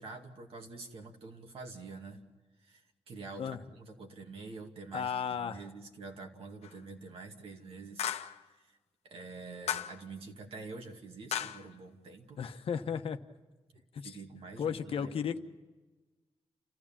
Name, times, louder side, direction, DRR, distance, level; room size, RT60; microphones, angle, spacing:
voice 1, 0.0-2.2 2.6-8.1 8.4-8.8 9.0-12.4 13.7-15.4, right 3 dB, 65° right, 3 dB, 2.5 m, -47 dB
voice 2, 4.9-5.6 12.4-13.2 13.9-14.2 14.6-15.4, left 7 dB, 60° left, 7 dB, 1.1 m, -34 dB
sound 1, 6.6-6.8 8.0-8.4 9.7-10.0 11.3-11.7, left 10 dB, 85° left, 0.8 m, -35 dB
29.5 x 15.0 x 7.4 m, 1.3 s
wide cardioid pair, 135°, 11 cm